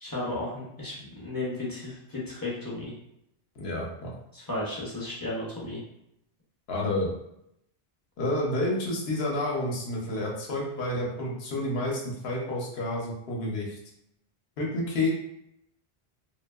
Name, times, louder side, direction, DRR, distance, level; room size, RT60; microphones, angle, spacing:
voice 1, 0.0-2.9 4.3-5.8, left 2 dB, 25° left, -6 dB, 0.5 m, -34 dB
voice 2, 3.6-4.1 6.7-7.1 8.2-13.8 14.6-15.1, left 1 dB, 75° left, -3 dB, 0.9 m, -29 dB
2.6 x 2.3 x 2.2 m, 0.79 s
omnidirectional pair, 1.0 m